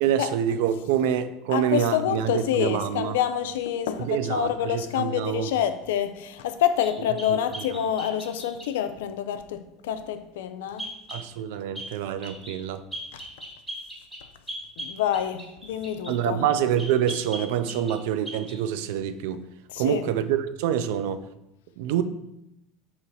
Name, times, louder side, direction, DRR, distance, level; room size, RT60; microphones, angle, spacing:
voice 1, 0.0-3.2 4.0-5.5 7.3-7.4 11.1-12.8 16.1-19.4 19.8-21.2 21.8-22.0, right 9 dB, 80° right, 0.3 m, -26 dB
voice 2, 1.5-10.9 13.1-13.2 14.8-16.4 19.7-20.0, left 10 dB, 90° left, 0.3 m, -27 dB
sound 1, 6.8-8.7 10.8-11.3 11.7-11.9 12.2-12.6 12.9-16.2 16.8-18.0 18.2-18.6, equal, 15° right, 1.5 m, -38 dB
3.9 x 2.9 x 4.1 m
supercardioid pair, 110°, 0 cm